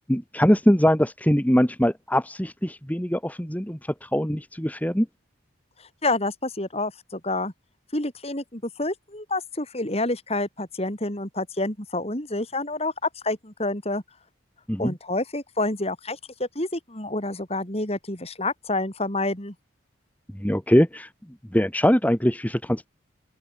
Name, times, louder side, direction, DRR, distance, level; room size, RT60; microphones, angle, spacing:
voice 1, 0.1-5.1 14.7-14.9 20.3-21.1 21.5-22.9, equal, 10° left, 1.7 m, -22 dB
voice 2, 5.8-7.5 7.9-12.9 13.2-14.0 14.8-19.5, left 2 dB, 30° left, 4.0 m, -28 dB
open air
head